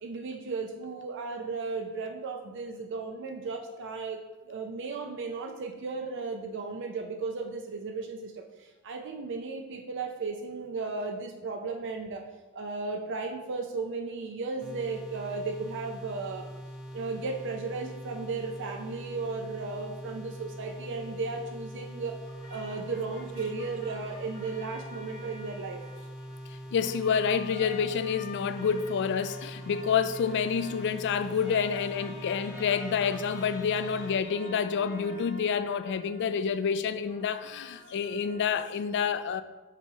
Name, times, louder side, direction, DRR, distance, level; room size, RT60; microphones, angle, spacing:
voice 1, 0.0-12.3 12.5-16.5 16.9-22.2 22.5-25.8, right 4 dB, 60° right, 0.5 m, -35 dB
sound 1, 14.6-34.2, equal, 5° right, 0.6 m, -43 dB
sound 2, 22.2-26.5 26.8-36.6 37.0-38.6, left 2 dB, 35° left, 1.8 m, -49 dB
voice 2, 26.7-39.4, left 6 dB, 55° left, 0.3 m, -28 dB
Bowed string instrument, 30.2-35.4, equal, 90° left, 2.0 m, -50 dB
6.7 x 3.0 x 4.7 m
head